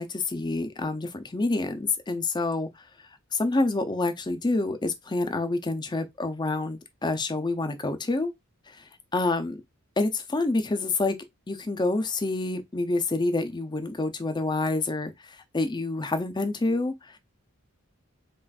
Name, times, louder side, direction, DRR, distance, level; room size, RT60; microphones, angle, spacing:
voice 1, 0.0-2.7 3.3-8.3 8.7-8.8 9.1-9.6 10.0-11.2 11.5-17.2, left 2 dB, 20° left, 0.5 m, -27 dB
5.6 x 2.5 x 2.4 m
head